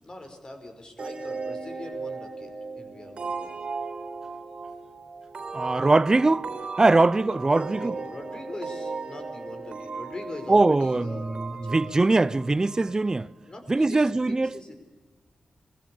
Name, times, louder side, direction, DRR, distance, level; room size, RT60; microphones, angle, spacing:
voice 1, 0.0-3.5 7.2-11.9 13.5-14.7, left 2 dB, 40° left, 5.2 m, -42 dB
sound 1, 1.0-13.4, right 4 dB, 60° right, 3.3 m, -37 dB
voice 2, 5.5-7.9 10.5-13.3 13.7-14.6, right 2 dB, 30° right, 0.6 m, -22 dB
22.0 x 16.0 x 8.6 m
cardioid pair, 45°, 2 cm